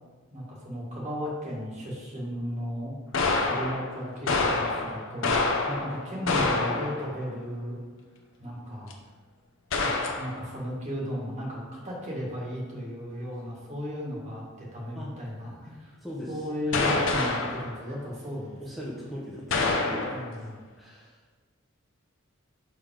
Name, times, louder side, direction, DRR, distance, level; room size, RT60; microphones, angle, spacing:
voice 1, 0.3-3.0 3.3-7.8 8.4-9.0 9.7-15.9 16.3-18.6 20.1-20.6, equal, 35° right, -4 dB, 1.7 m, -35 dB
sound 1, 3.1-7.2 8.9-9.0 9.7-10.4 16.7-17.7 19.5-20.3, left 3 dB, 70° left, 0.7 m, -27 dB
voice 2, 16.0-16.3 16.7-16.8 18.6-20.2 20.8-21.2, equal, ahead, -6 dB, 0.8 m, -39 dB
5.8 x 4.9 x 3.8 m, 1.3 s
head